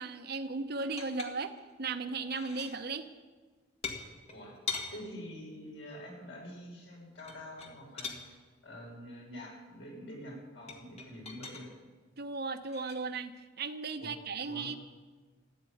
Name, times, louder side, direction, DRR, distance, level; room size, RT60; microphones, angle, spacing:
voice 1, 0.0-3.1 12.2-14.8, right 4 dB, 55° right, 8 dB, 0.9 m, -36 dB
sound 1, 0.8-1.7 2.1-2.8 3.8-4.9 7.1-8.2 10.7-11.7 12.7-12.9, left 5 dB, 35° left, 1.9 m, -41 dB
voice 2, 4.9-8.4 8.6-11.7 14.0-14.1 14.4-14.7, equal, 75° left, -2 dB, 6.4 m, -46 dB
15.0 x 9.6 x 9.3 m, 1.4 s
head